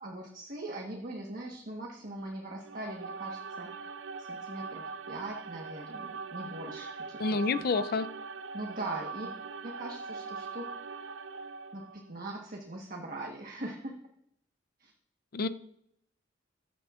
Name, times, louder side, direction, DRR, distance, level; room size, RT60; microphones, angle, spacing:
voice 1, 0.0-3.9 4.2-7.7 8.5-9.3 9.6-11.1 11.7-13.9 14.8-14.9, right 1 dB, 50° right, 0 dB, 1.3 m, -41 dB
sound 1, 2.6-12.1, right 4 dB, 75° right, 0.4 m, -41 dB
voice 2, 7.2-8.1 15.3-15.5, left 4 dB, 55° left, 13 dB, 0.5 m, -28 dB
15.0 x 9.9 x 2.5 m, 0.72 s
head